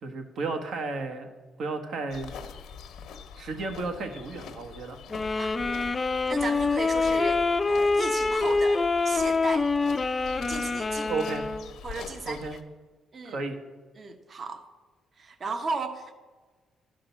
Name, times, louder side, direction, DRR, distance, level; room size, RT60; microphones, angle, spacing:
voice 1, 0.0-1.3 1.6-2.3 3.4-5.0 11.1-11.4 12.2-12.6 13.2-13.6, right 3 dB, 70° right, 5 dB, 1.3 m, -33 dB
sound 1, 2.1-12.6, left 7 dB, 80° left, 0.9 m, -44 dB
sound 2, 5.1-11.7, left 3 dB, 25° left, 0.5 m, -26 dB
voice 2, 5.4-6.0 6.3-9.7 10.5-11.2 11.8-12.4 13.1-13.4 13.9-14.6 15.2-16.1, right 3 dB, 40° right, 8 dB, 0.9 m, -35 dB
11.5 x 5.1 x 7.2 m, 1.3 s
cardioid pair, 90°, 0 cm